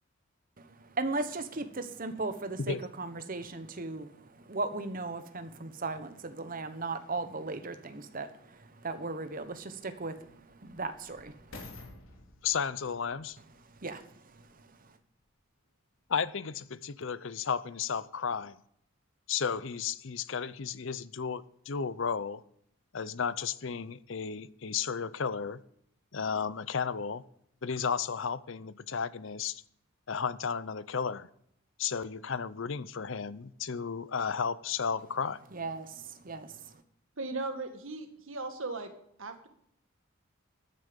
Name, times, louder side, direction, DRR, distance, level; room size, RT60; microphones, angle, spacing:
voice 1, 0.6-11.6 13.7-14.9 35.5-36.8, right 3 dB, 40° right, 10 dB, 1.1 m, -37 dB
sound 1, 8.5-8.6 9.3-14.6 15.3-15.4, left 2 dB, 80° left, 3.2 m, -52 dB
voice 2, 12.4-13.4 16.1-18.6 19.3-22.4 22.9-25.6 26.1-27.2 27.6-29.6 30.1-31.3 31.8-35.4, left 6 dB, 60° left, 17 dB, 0.6 m, -33 dB
voice 3, 37.2-38.9 39.2-39.5, right 3 dB, 70° right, 7 dB, 1.9 m, -37 dB
13.5 x 9.8 x 5.2 m, 0.71 s
head